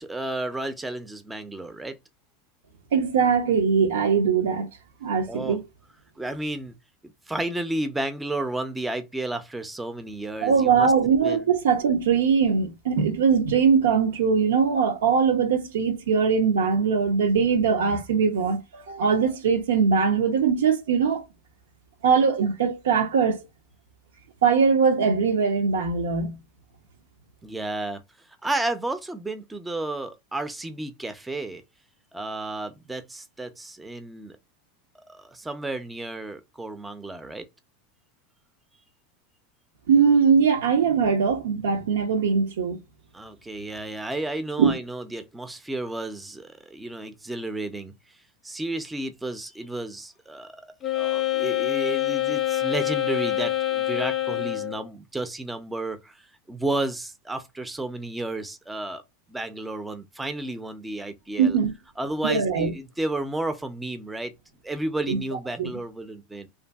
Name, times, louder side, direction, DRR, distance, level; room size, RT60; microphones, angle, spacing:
voice 1, 0.0-2.0 5.3-5.6 6.2-6.7 7.3-10.9 11.2-11.4 27.4-28.0 28.4-31.6 32.1-34.4 35.1-37.5 43.1-47.9 48.4-50.7 51.0-59.0 59.3-61.6 62.0-64.3 64.6-66.5, right 2 dB, 10° right, 0.4 m, -32 dB
voice 2, 2.9-4.7 5.0-5.6 10.4-21.2 22.0-23.4 24.4-26.4 39.9-42.8 44.6-44.7 61.4-61.7 62.2-62.7 65.1-65.2 65.6-65.7, right 6 dB, 85° right, 0.6 m, -21 dB
Wind instrument woodwind instrument, 50.8-54.9, left 14 dB, 35° left, 0.6 m, -26 dB
2.6 x 2.5 x 2.3 m
hypercardioid pair, 105°, 0 cm